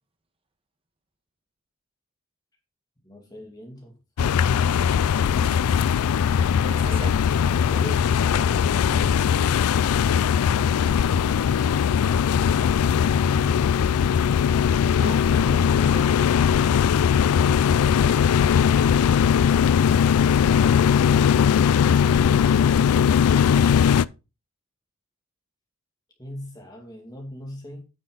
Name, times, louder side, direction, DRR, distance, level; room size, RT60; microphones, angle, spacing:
voice 1, 3.0-4.4 26.2-27.9, equal, 15° left, 2.4 m, -41 dB
sound 1, 4.2-24.1, left 8 dB, 85° left, 0.3 m, -20 dB
voice 2, 5.2-5.8 6.6-7.2 10.5-11.3 14.8-16.3, right 1 dB, 25° right, 1.2 m, -39 dB
9.6 x 6.3 x 3.9 m
head